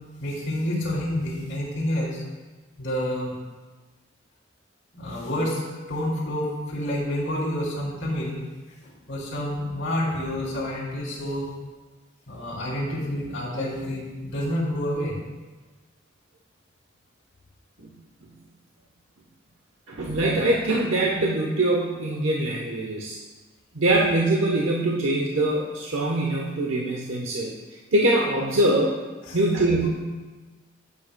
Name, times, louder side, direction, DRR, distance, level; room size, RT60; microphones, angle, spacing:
voice 1, 0.2-2.2 2.8-3.3 4.9-8.4 8.8-11.4 12.3-15.2 29.2-29.4, left 1 dB, 85° left, -9 dB, 2.8 m, -28 dB
voice 2, 19.9-23.2 23.7-27.5 27.9-29.0 29.3-29.9, right 1 dB, 85° right, -3 dB, 1.0 m, -23 dB
15.0 x 7.7 x 2.2 m, 1.3 s
head